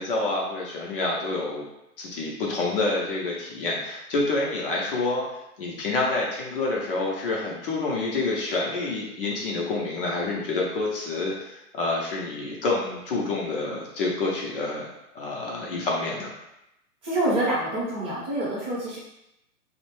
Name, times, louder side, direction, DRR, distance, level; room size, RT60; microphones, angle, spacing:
voice 1, 0.0-1.6 2.0-5.2 5.6-14.9 15.1-16.3, left 3 dB, 40° left, -3 dB, 0.5 m, -28 dB
voice 2, 17.0-19.0, right 1 dB, 10° right, -8 dB, 0.7 m, -26 dB
2.5 x 2.1 x 2.9 m, 0.86 s
hypercardioid pair, 135°, 46 cm